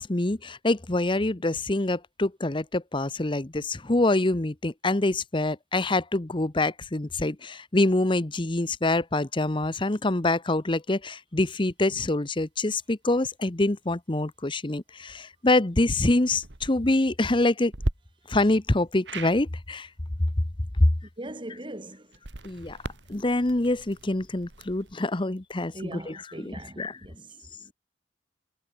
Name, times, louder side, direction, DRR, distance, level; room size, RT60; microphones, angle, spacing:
voice 1, 0.0-17.7 18.3-19.9 22.4-22.8 23.1-27.0, left 2 dB, 30° left, 0.9 m, -26 dB
sound 1, 16.3-16.7 17.7-17.9 19.0-19.4 22.1-24.9, right 1 dB, 85° right, 1.9 m, -36 dB
voice 2, 21.2-22.2 25.7-27.7, right 1 dB, 30° right, 2.7 m, -41 dB
head